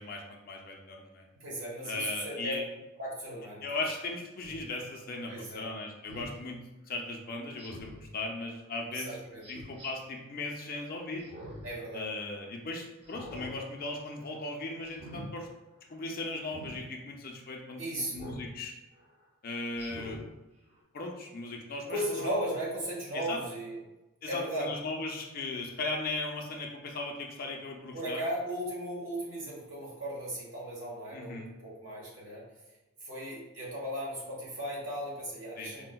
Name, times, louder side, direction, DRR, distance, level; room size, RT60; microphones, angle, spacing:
voice 1, 0.0-1.3 1.8-2.6 3.6-6.6 6.9-9.2 9.5-11.3 11.9-15.5 15.9-18.7 19.4-20.2 20.9-22.3 23.1-23.4 24.2-28.2 31.1-31.5 35.6-35.7, left 2 dB, 45° left, 1 dB, 0.4 m, -37 dB
voice 2, 1.4-2.5 3.0-3.6 5.3-5.6 8.9-9.4 11.6-12.1 17.8-18.2 21.9-23.8 24.3-24.7 27.9-32.4 33.0-35.9, right 1 dB, 60° right, -4 dB, 1.1 m, -36 dB
Speech synthesizer, 4.4-4.6 6.1-6.4 7.6-8.1 9.4-9.9 11.2-11.7 12.1-12.2 13.0-13.5 13.9-14.2 14.9-15.3 16.5-16.8 18.1-18.5 18.9-19.1 19.7-20.2 20.7-20.8, equal, 30° right, 0.6 m, -45 dB
4.4 x 2.1 x 2.2 m, 1.0 s
head